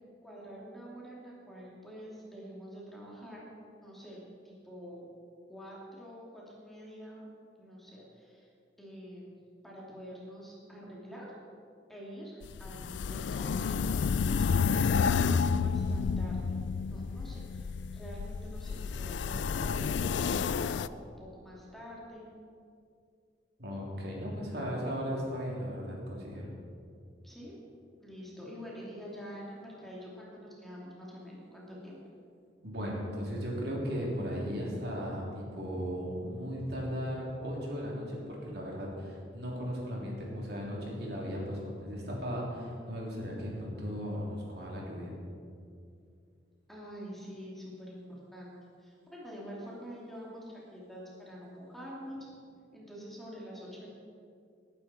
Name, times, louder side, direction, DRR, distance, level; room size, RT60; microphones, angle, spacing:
voice 1, 0.2-3.5 3.8-5.1 5.5-7.3 7.6-8.5 8.8-9.4 9.6-11.3 11.9-13.8 14.4-22.3 27.2-27.5 28.0-32.0 46.7-48.5 48.8-52.2 52.7-53.9, equal, ahead, -5 dB, 2.6 m, -46 dB
sound 1, 12.4-20.9, left 5 dB, 75° left, 0.4 m, -30 dB
voice 2, 23.6-26.4 32.6-45.1, equal, 60° right, -3 dB, 3.2 m, -36 dB
19.5 x 9.7 x 4.4 m, 2.4 s
head